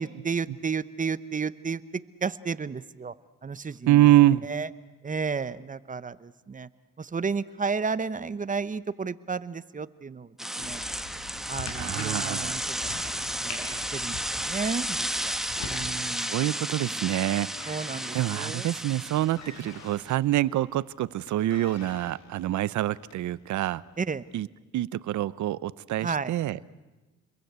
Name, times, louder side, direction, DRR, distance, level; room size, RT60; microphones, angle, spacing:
voice 1, 0.0-3.1 3.4-4.1 4.4-4.7 5.0-6.7 7.0-10.8 11.5-12.6 13.4-15.4 15.7-16.5 16.8-17.1 17.7-18.7 24.0-24.3 26.0-26.3, right 5 dB, 25° right, 15 dB, 0.9 m, -32 dB
voice 2, 3.9-4.5 11.8-12.6 16.2-17.7 18.1-23.8 24.3-24.5 24.7-26.6, right 14 dB, 70° right, 19 dB, 0.8 m, -25 dB
sound 1, 10.4-20.1, equal, ahead, 1.4 m, -33 dB
sound 2, 10.6-15.8, left 4 dB, 90° left, 7.0 m, -42 dB
sound 3, 14.1-16.4 16.7-17.1 17.4-23.4 24.2-24.3, left 5 dB, 65° left, 2.9 m, -50 dB
29.5 x 22.5 x 8.2 m, 1.1 s
cardioid pair, 90°, 30 cm